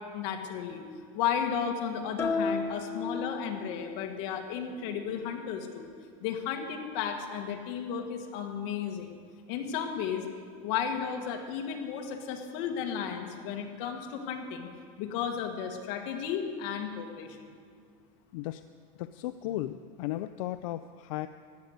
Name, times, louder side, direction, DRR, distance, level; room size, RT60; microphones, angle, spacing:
voice 1, 0.1-0.8 1.1-5.9 6.2-9.1 9.5-10.3 10.6-14.7 15.0-17.4, left 7 dB, 60° left, 4 dB, 1.9 m, -34 dB
sound 1, 2.2-4.0, left 3 dB, 15° left, 1.0 m, -33 dB
voice 2, 19.0-21.3, left 14 dB, 85° left, 11 dB, 0.5 m, -35 dB
15.5 x 10.5 x 6.6 m, 2.2 s
supercardioid pair, 160°, 17 cm